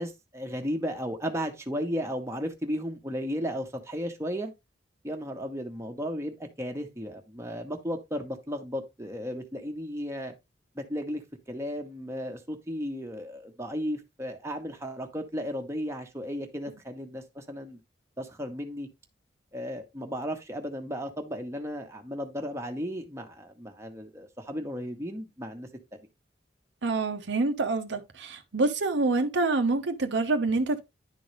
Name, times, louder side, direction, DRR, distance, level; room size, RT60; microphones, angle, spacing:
voice 1, 0.0-4.5 5.0-10.3 10.8-11.2 11.5-17.8 18.2-18.9 19.5-25.7, equal, 15° right, 1.1 m, -34 dB
voice 2, 26.8-30.8, right 3 dB, 70° right, 0.8 m, -26 dB
10.5 x 3.9 x 3.2 m
head